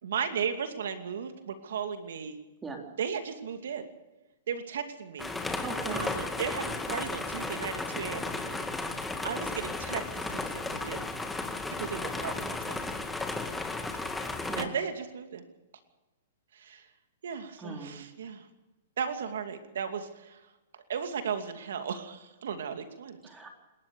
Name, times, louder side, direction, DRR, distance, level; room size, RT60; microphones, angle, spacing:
voice 1, 0.0-2.4 3.0-3.9 4.5-5.3 5.9-8.7 9.2-11.0 11.8-12.6 14.6-15.4 16.5-16.9 17.2-18.5 19.0-20.4 20.7-23.2, right 7 dB, 70° right, 7 dB, 2.6 m, -35 dB
sound 1, 5.2-14.7, left 3 dB, 5° left, 2.1 m, -34 dB
voice 2, 5.6-6.0 14.5-14.7 17.6-18.0 23.2-23.5, right 3 dB, 15° right, 2 dB, 3.8 m, -39 dB
28.0 x 13.5 x 7.0 m, 1.1 s
hypercardioid pair, 125°, 0 cm